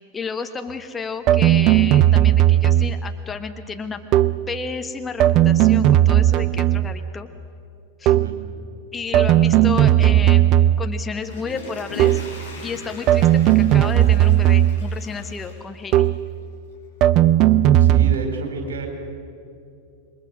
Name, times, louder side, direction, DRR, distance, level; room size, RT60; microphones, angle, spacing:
voice 1, 0.1-4.0 4.5-7.3 8.0-8.1 8.9-12.2 12.6-16.1, left 4 dB, 15° left, 6 dB, 1.2 m, -32 dB
sound 1, 1.3-3.1 4.1-4.5 5.2-7.1 8.1-8.5 9.1-11.0 12.0-12.4 13.1-15.0 15.9-16.3 17.0-18.2, right 12 dB, 40° right, 0.5 m, -16 dB
voice 2, 8.0-8.4 17.8-18.9, right 4 dB, 60° right, 3 dB, 4.6 m, -30 dB
Water / Toilet flush, 11.0-16.3 16.7-16.8, left 4 dB, 65° left, 5.7 m, -40 dB
27.5 x 22.5 x 6.3 m, 2.5 s
figure-of-eight pair, 90°, 0 cm